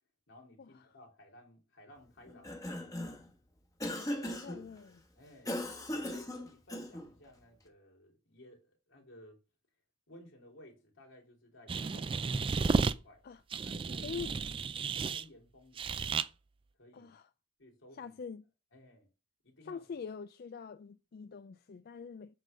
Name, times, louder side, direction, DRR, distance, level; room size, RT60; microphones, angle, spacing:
voice 1, 0.3-3.0 3.8-5.5 5.9-9.4 10.1-13.2 13.6-14.6 14.9-16.0 16.8-17.1 17.6-18.2 18.7-19.1 19.4-19.8, left 1 dB, 85° left, 3.2 m, -57 dB
Cough, 2.3-3.3 3.8-4.6 5.5-7.1, left 1 dB, 20° left, 1.2 m, -38 dB
voice 2, 3.8-5.0 13.2-13.4 14.0-14.3 16.9-17.3 17.9-18.5 19.7-22.4, left 6 dB, 50° left, 0.3 m, -44 dB
sound 1, 11.7-12.9 13.5-15.2 15.8-16.3, right 4 dB, 25° right, 0.3 m, -32 dB
8.4 x 3.9 x 6.6 m
head